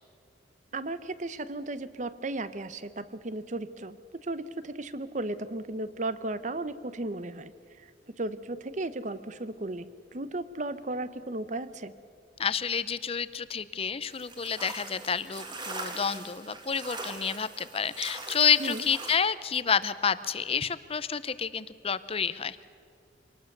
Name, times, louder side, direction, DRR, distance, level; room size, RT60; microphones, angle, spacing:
voice 1, 0.7-7.5 7.8-11.9 18.6-18.9, right 2 dB, 40° right, 14 dB, 0.8 m, -35 dB
voice 2, 12.4-22.6, left 7 dB, 30° left, 15 dB, 0.7 m, -29 dB
sound 1, 14.1-19.1, right 3 dB, 25° right, 1.9 m, -41 dB
25.0 x 19.5 x 6.7 m, 2.3 s
head